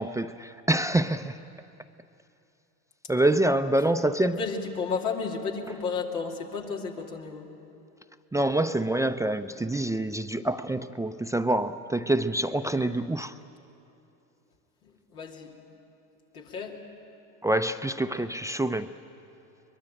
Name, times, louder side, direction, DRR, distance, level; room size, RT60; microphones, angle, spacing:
voice 1, 0.0-1.4 3.1-4.4 8.3-13.3 17.4-18.9, right 1 dB, 5° right, 0.5 m, -26 dB
voice 2, 4.2-7.5 14.8-15.5 16.3-16.8, left 5 dB, 85° left, 2.8 m, -33 dB
23.0 x 21.5 x 9.0 m
hypercardioid pair, 75°, 44 cm